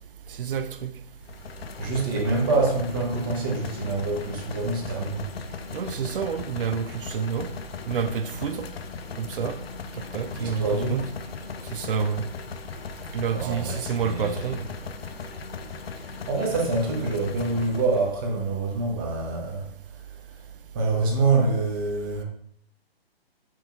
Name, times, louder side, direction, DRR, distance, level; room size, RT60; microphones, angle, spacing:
voice 1, 0.3-0.9 5.7-7.5 7.9-8.7 9.2-9.6 9.9-11.0 11.7-12.2 13.1-14.6, right 7 dB, 60° right, 10 dB, 0.4 m, -28 dB
sound 1, 1.2-18.1, left 6 dB, 75° left, 0.5 m, -38 dB
voice 2, 1.8-5.3 10.4-11.0 13.3-14.6 16.3-20.0 20.3-20.4 20.7-22.2, right 3 dB, 20° right, 0 dB, 0.6 m, -26 dB
6.0 x 2.7 x 2.3 m, 0.68 s
figure-of-eight pair, 140°, 31 cm